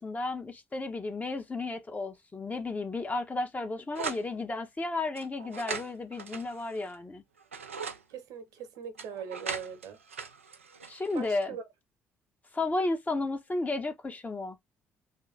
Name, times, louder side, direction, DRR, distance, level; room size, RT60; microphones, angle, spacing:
voice 1, 0.0-7.2 10.9-11.6 12.5-14.6, left 2 dB, 25° left, 1.0 m, -33 dB
sound 1, 4.0-4.3 5.2-6.9 7.4-8.0 9.0-11.4, right 5 dB, 85° right, 0.4 m, -39 dB
voice 2, 8.1-10.0 11.1-11.6, right 7 dB, 60° right, 1.0 m, -41 dB
3.1 x 2.8 x 3.9 m
figure-of-eight pair, 50°, 7 cm